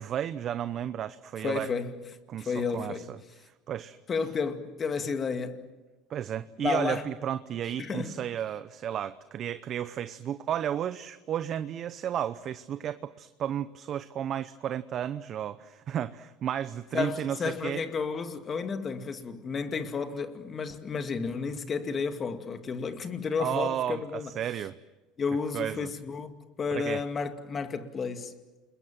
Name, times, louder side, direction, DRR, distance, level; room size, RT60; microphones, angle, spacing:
voice 1, 0.0-1.7 2.3-3.2 3.7-4.0 6.1-17.8 23.4-24.8 25.5-25.9 26.7-27.0, right 10 dB, 45° right, 0.8 m, -33 dB
voice 2, 1.4-2.0 2.4-3.1 4.1-5.7 6.6-7.1 7.8-8.2 16.9-24.3 25.2-28.3, left 5 dB, 30° left, 2.3 m, -32 dB
29.5 x 21.5 x 7.6 m
supercardioid pair, 95°, 0 cm